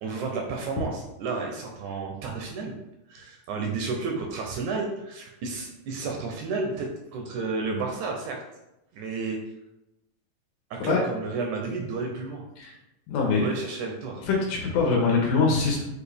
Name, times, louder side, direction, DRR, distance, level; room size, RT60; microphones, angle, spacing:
voice 1, 0.0-2.7 3.1-8.4 8.9-9.4 10.7-12.4 13.4-14.2, right 4 dB, 80° right, 1 dB, 1.8 m, -31 dB
voice 2, 13.1-13.5 14.2-15.9, left 4 dB, 85° left, -1 dB, 2.4 m, -23 dB
6.5 x 2.3 x 3.4 m, 0.90 s
omnidirectional pair, 3.7 m